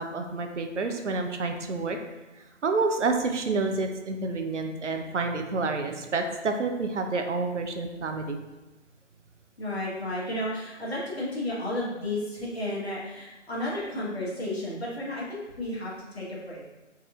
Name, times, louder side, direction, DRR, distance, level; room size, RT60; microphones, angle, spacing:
voice 1, 0.0-2.0 2.6-8.4, right 3 dB, 75° right, 5 dB, 0.5 m, -29 dB
voice 2, 9.6-16.7, left 1 dB, 55° left, -5 dB, 1.2 m, -33 dB
4.0 x 2.6 x 2.4 m, 1.1 s
figure-of-eight pair, 140°, 37 cm